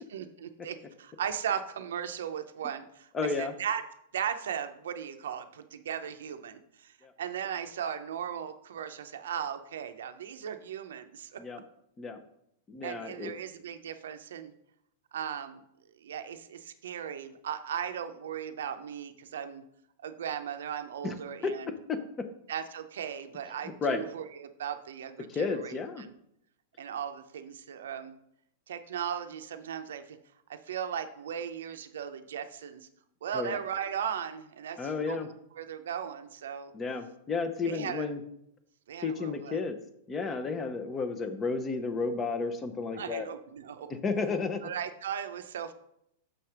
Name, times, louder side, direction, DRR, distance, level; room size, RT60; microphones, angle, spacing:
voice 1, 0.1-3.1 3.4-3.8 4.1-11.4 12.8-14.5 15.1-15.6 16.0-19.6 20.0-21.7 22.5-26.1 26.8-28.2 28.7-30.2 30.5-32.8 33.2-34.8 35.1-36.7 37.6-38.1 38.9-39.6 43.0-44.0 44.6-45.7, right 8 dB, 85° right, 8 dB, 0.5 m, -37 dB
voice 2, 3.1-3.5 7.0-7.1 11.4-11.6 12.0-12.2 12.7-13.3 21.0-21.1 21.4-21.5 21.9-22.3 23.8-24.0 25.3-26.0 33.3-33.6 34.8-35.3 36.7-38.2 39.0-39.8 40.1-43.3 43.9-44.6, left 4 dB, 20° left, 9 dB, 0.6 m, -32 dB
6.3 x 3.3 x 5.8 m, 0.75 s
supercardioid pair, 150°, 0 cm